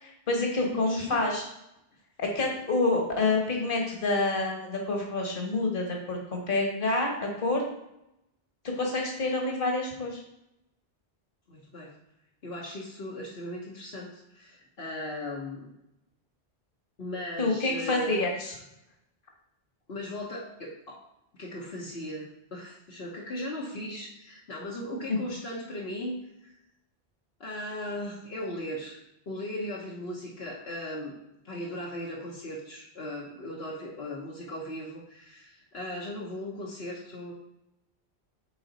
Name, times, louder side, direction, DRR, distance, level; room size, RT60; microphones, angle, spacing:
voice 1, 0.0-1.4 2.2-7.6 8.6-10.2 17.4-18.5, left 2 dB, 55° left, 0 dB, 1.5 m, -28 dB
voice 2, 0.6-1.3 11.5-11.9 12.4-15.7 17.0-18.2 19.9-21.0 21.3-26.2 26.4-26.5 27.4-29.0 29.3-31.2 31.4-37.3, left 1 dB, 70° left, -4 dB, 1.4 m, -37 dB
8.7 x 4.0 x 4.0 m, 0.85 s
omnidirectional pair, 1.1 m